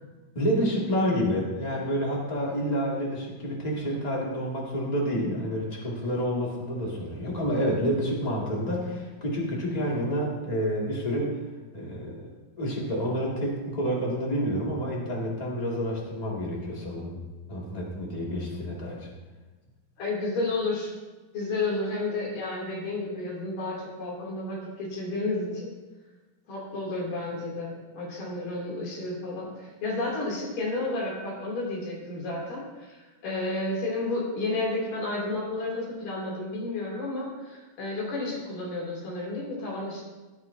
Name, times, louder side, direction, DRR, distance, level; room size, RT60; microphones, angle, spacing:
voice 1, 0.3-11.3 11.7-12.3 12.6-17.2 17.5-19.1, equal, 15° left, -3 dB, 1.9 m, -29 dB
voice 2, 20.0-20.9 21.3-25.7 26.5-40.0, left 2 dB, 90° left, -3 dB, 4.7 m, -31 dB
16.5 x 10.0 x 2.8 m, 1.2 s
omnidirectional pair, 3.6 m